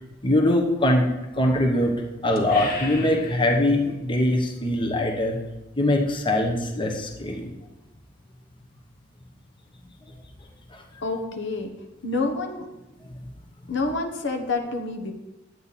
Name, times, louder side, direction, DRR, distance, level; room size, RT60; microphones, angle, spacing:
voice 1, 0.2-1.0 1.3-1.9 2.2-5.4 5.8-7.5 10.7-10.8, left 1 dB, 25° left, 2 dB, 1.0 m, -22 dB
sound 1, 2.3-3.9, left 1 dB, 50° left, 1.6 m, -34 dB
voice 2, 11.0-11.7 12.0-12.7 13.7-15.1, left 3 dB, 70° left, 3 dB, 1.2 m, -28 dB
10.5 x 8.4 x 4.2 m, 1.0 s
head